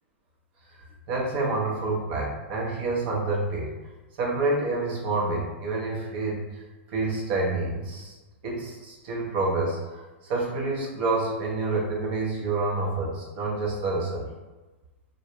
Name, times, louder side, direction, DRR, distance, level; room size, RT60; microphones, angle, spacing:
voice 1, 0.8-3.7 4.2-6.6 6.9-8.1 8.4-14.3, right 3 dB, 50° right, -3 dB, 0.7 m, -28 dB
2.2 x 2.0 x 2.9 m, 1.2 s
hypercardioid pair, 115°, 7 cm